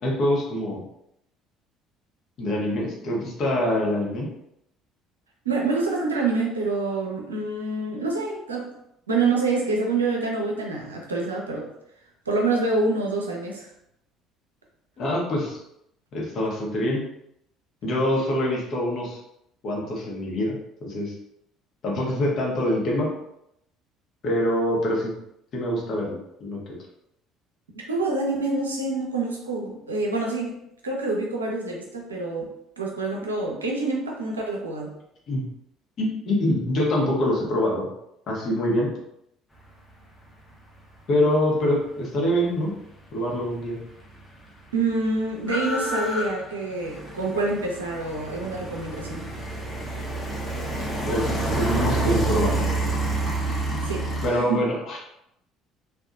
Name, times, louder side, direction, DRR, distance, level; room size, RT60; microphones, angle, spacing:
voice 1, 0.0-0.8 2.4-4.3 15.0-15.6 16.1-17.0 17.8-19.2 19.6-20.6 20.8-21.1 21.8-23.1 24.2-25.1 25.5-26.1 26.4-26.6 35.3-35.4 36.0-37.9 38.3-38.9 41.1-42.7 43.1-43.8 51.1-52.7 54.2-55.0, left 1 dB, 45° left, -3 dB, 0.9 m, -24 dB
voice 2, 5.4-8.7 9.1-11.7 12.3-13.7 27.9-32.5 32.8-34.9 44.7-49.3 53.5-53.6 53.8-54.7, right 3 dB, 80° right, -1 dB, 0.5 m, -27 dB
sound 1, 43.6-43.7 43.9-54.3, right 2 dB, 15° left, 0.8 m, -28 dB
2.7 x 2.2 x 2.4 m, 0.78 s
figure-of-eight pair, 55°, 0 cm